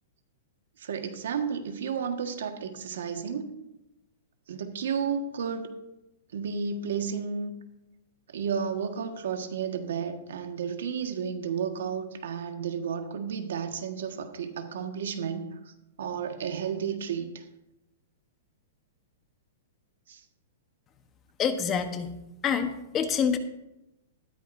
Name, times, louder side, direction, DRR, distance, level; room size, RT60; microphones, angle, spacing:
voice 1, 0.8-3.5 4.5-5.7 6.3-7.5 8.3-15.5 16.0-17.4 20.1-20.2, right 6 dB, 80° right, 6 dB, 1.6 m, -32 dB
voice 2, 21.4-22.1 22.4-23.4, left 7 dB, 25° left, 8 dB, 1.0 m, -27 dB
13.5 x 13.0 x 2.7 m, 0.94 s
hypercardioid pair, 145°, 0 cm